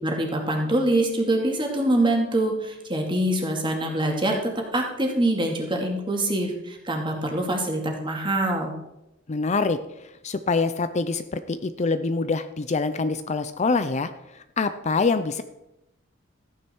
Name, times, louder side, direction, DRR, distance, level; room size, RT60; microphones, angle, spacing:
voice 1, 0.0-8.7, right 1 dB, 25° right, 1 dB, 2.4 m, -24 dB
voice 2, 9.3-9.8 10.2-14.1 14.6-15.4, left 4 dB, 35° left, 11 dB, 0.5 m, -25 dB
14.0 x 9.4 x 4.5 m, 0.90 s
head